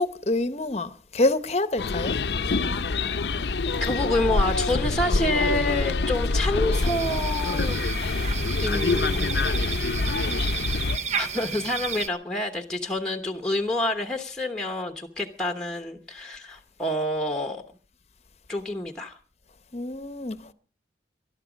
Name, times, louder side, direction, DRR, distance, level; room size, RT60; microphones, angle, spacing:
voice 1, 0.0-2.1 19.7-20.5, left 2 dB, 35° left, 0.8 m, -26 dB
sound 1, 1.8-11.0, left 3 dB, 75° left, 0.6 m, -25 dB
voice 2, 3.8-7.8 8.6-9.7 11.2-17.6 18.5-19.2, left 1 dB, 5° left, 1.1 m, -28 dB
sound 2, 6.7-12.1, right 6 dB, 40° right, 0.7 m, -32 dB
19.5 x 12.0 x 5.1 m
head